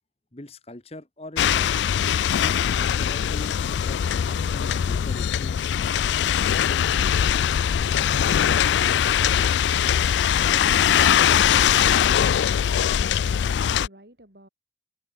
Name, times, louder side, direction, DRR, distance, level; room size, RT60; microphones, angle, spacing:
voice 1, 0.3-1.9 2.4-4.0 4.3-5.6 6.5-6.8, left 1 dB, 35° left, 1.5 m, -41 dB
sound 1, 1.4-13.9, left 9 dB, 80° left, 0.3 m, -21 dB
voice 2, 9.1-10.4 12.3-14.5, right 1 dB, 60° right, 5.1 m, -51 dB
head